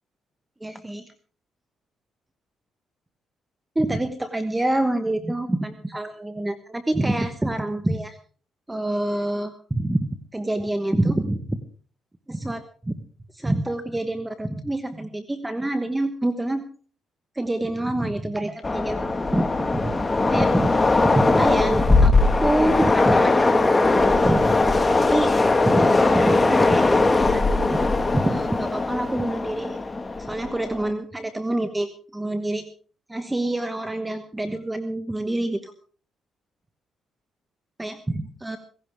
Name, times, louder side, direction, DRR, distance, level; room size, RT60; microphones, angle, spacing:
voice 1, 0.6-1.1 3.7-8.2 8.7-11.6 12.3-12.9 13.3-16.6 17.3-19.5 19.8-19.9 20.3-20.8 21.0-25.3 25.6-26.8 27.1-27.9 28.1-29.8 30.2-32.7 33.1-35.7 37.8-38.6, right 1 dB, 15° right, 9 dB, 1.2 m, -26 dB
Train, 18.6-30.9, left 3 dB, 20° left, 1.7 m, -20 dB
17.5 x 16.5 x 3.6 m, 0.41 s
cardioid pair, 90°, 0 cm